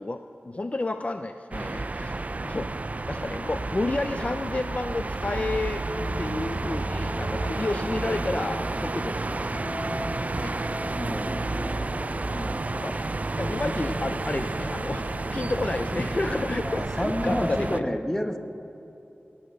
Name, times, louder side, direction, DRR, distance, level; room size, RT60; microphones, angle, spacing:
voice 1, 0.0-2.7 3.1-5.8 6.2-9.7 10.2-10.6 12.3-17.8, left 2 dB, 35° left, 8 dB, 0.5 m, -31 dB
sound 1, 1.5-17.8, right 2 dB, 40° right, 0.4 m, -31 dB
sound 2, 5.9-17.7, left 1 dB, 70° left, 3.6 m, -38 dB
voice 2, 10.9-11.7 16.6-18.4, equal, 10° left, 6 dB, 1.1 m, -30 dB
19.0 x 9.3 x 6.5 m, 3.0 s
wide cardioid pair, 80°, 4 cm